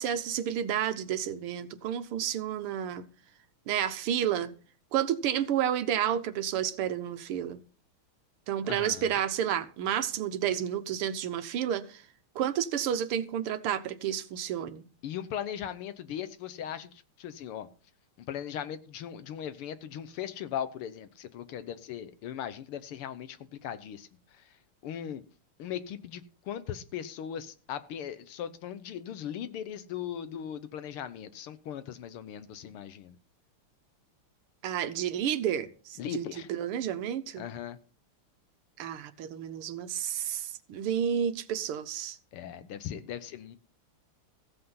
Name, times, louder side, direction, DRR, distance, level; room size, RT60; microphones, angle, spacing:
voice 1, 0.0-3.1 3.7-4.5 4.9-7.6 8.5-12.0 12.4-14.8 34.6-36.2 36.5-37.5 38.8-42.2, right 9 dB, 85° right, 1.9 m, -31 dB
voice 2, 8.6-9.2 15.0-17.7 18.2-24.5 24.8-25.2 25.6-33.2 36.0-36.5 37.4-37.8 42.3-43.6, left 9 dB, 85° left, 1.9 m, -38 dB
15.0 x 8.0 x 5.6 m
omnidirectional pair, 2.4 m